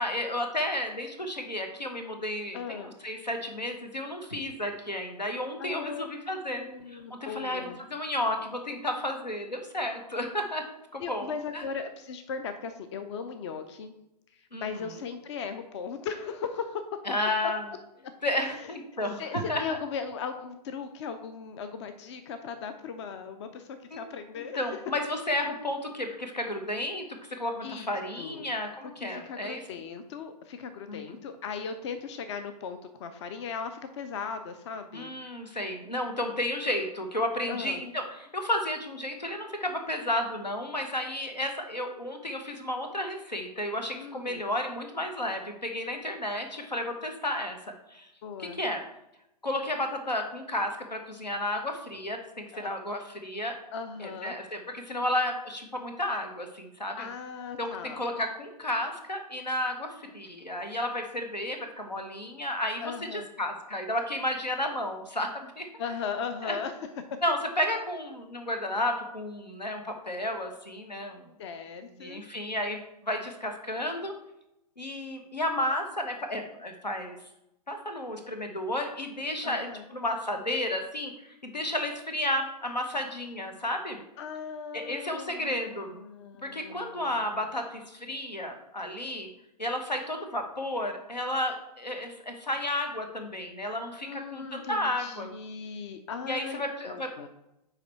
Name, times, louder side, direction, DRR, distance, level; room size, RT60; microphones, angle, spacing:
voice 1, 0.0-10.6 10.9-11.6 14.5-14.7 17.1-17.6 18.2-19.8 23.9-24.0 24.6-29.6 30.9-31.2 34.9-47.6 47.9-48.1 48.4-48.8 49.4-53.6 54.0-57.1 57.6-65.7 66.4-66.6 67.2-71.2 72.0-74.1 74.8-77.2 77.7-84.0 84.7-86.0 86.4-89.3 89.6-95.3 96.3-97.3, left 1 dB, 90° left, 5 dB, 1.1 m, -32 dB
voice 2, 2.5-2.9 5.6-6.1 6.5-7.8 11.0-13.9 14.3-16.8 18.6-18.7 19.2-24.6 27.6-27.9 28.2-28.5 29.0-35.1 37.5-37.8 43.9-44.4 48.2-48.6 52.5-52.7 53.7-54.4 57.0-58.0 62.8-63.3 65.8-67.0 71.4-72.2 79.4-79.8 84.2-87.4 94.0-97.3, left 6 dB, 45° left, 9 dB, 0.6 m, -38 dB
9.1 x 3.3 x 4.2 m, 0.87 s
figure-of-eight pair, 115°, 21 cm